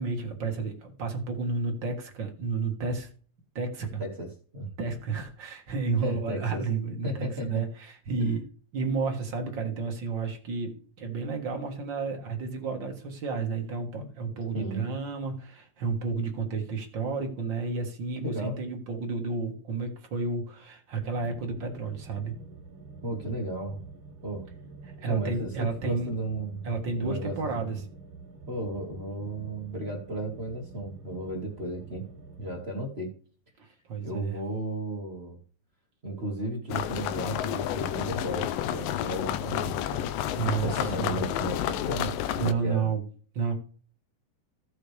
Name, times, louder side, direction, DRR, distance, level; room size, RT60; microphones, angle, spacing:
voice 1, 0.0-3.1 3.5-4.0 4.8-8.4 8.7-22.3 25.0-26.1 26.6-27.8 33.6-34.4 40.3-41.2 42.4-43.0 43.3-43.5, right 4 dB, 45° right, 3 dB, 1.8 m, -31 dB
voice 2, 6.0-6.6 7.0-7.5 14.0-14.1 14.5-14.8 18.2-18.6 23.0-23.8 24.2-24.5 25.1-27.7 28.5-32.0 32.4-33.1 34.0-35.4 36.0-40.1 40.6-42.1 42.4-42.9, right 1 dB, 25° right, 0 dB, 1.7 m, -34 dB
sound 1, 21.0-32.6, right 4 dB, 70° right, 3.3 m, -47 dB
sound 2, 36.7-42.5, left 11 dB, 85° left, 2.4 m, -30 dB
15.0 x 6.6 x 3.4 m, 0.41 s
omnidirectional pair, 3.9 m